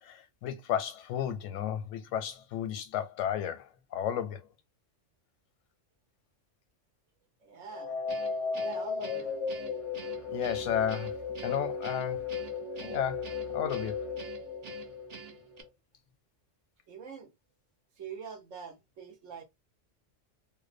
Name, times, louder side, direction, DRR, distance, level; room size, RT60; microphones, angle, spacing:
voice 1, 0.0-4.5 10.3-12.3 12.8-14.1, left 9 dB, 85° left, 0.9 m, -33 dB
voice 2, 7.4-8.0 8.6-9.3 14.8-14.9 16.9-17.3 18.0-19.4, right 6 dB, 85° right, 1.2 m, -44 dB
sound 1, 7.7-15.7, left 5 dB, 45° left, 0.5 m, -36 dB
Guitar, 8.1-15.6, right 6 dB, 50° right, 0.5 m, -48 dB
2.6 x 2.1 x 2.4 m
omnidirectional pair, 1.3 m